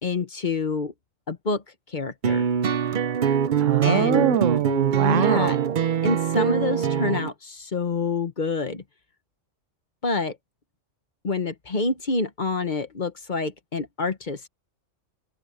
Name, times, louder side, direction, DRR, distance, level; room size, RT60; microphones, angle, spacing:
voice 1, 0.0-0.9 1.3-1.6 1.9-2.5 3.8-4.3 4.9-5.6 6.0-8.8 10.0-10.4 11.2-14.5, left 3 dB, 40° left, 1.1 m, -27 dB
sound 1, 2.2-7.3, right 7 dB, 50° right, 0.7 m, -23 dB
voice 2, 3.6-5.8, right 12 dB, 75° right, 0.9 m, -23 dB
open air
omnidirectional pair, 1.3 m